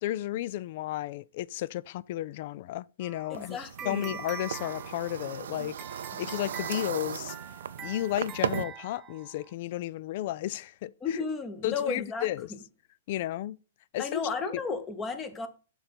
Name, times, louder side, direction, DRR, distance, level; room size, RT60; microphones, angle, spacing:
voice 1, 0.0-7.4 7.8-11.2 11.6-12.5 13.1-13.6 13.9-14.2 14.5-14.6, left 14 dB, 50° left, 0.3 m, -33 dB
sound 1, 3.0-9.5, right 8 dB, 20° right, 0.5 m, -44 dB
voice 2, 3.3-4.2 11.0-12.3 14.0-15.5, left 5 dB, 20° left, 1.1 m, -33 dB
sound 2, 3.3-8.6, right 8 dB, 75° right, 0.5 m, -37 dB
6.9 x 3.8 x 6.0 m
hypercardioid pair, 140°, 0 cm